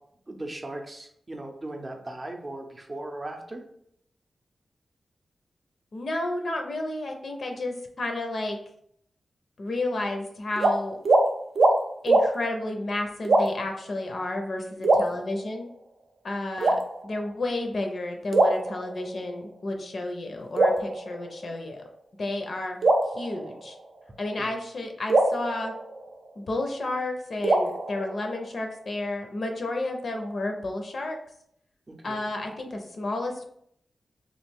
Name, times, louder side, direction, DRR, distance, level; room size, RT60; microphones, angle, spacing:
voice 1, 0.3-3.6 15.1-15.2 24.4-24.5 31.9-32.2, right 1 dB, 30° right, 3 dB, 0.5 m, -38 dB
voice 2, 5.9-8.6 9.6-11.0 12.0-15.7 16.2-21.8 22.2-22.8 23.1-23.8 24.2-25.7 26.4-31.2 32.0-33.5, left 2 dB, 55° left, 3 dB, 0.6 m, -31 dB
sound 1, 10.6-10.7 11.0-11.2 11.6-11.8 12.1-12.3 13.2-13.7 14.8-15.7 16.6-17.3 18.3-19.3 20.6-21.7 22.8-24.0 25.1-26.5 27.4-28.6, right 2 dB, 75° right, 0.5 m, -24 dB
3.1 x 2.4 x 3.5 m, 0.69 s
wide cardioid pair, 105°, 0 cm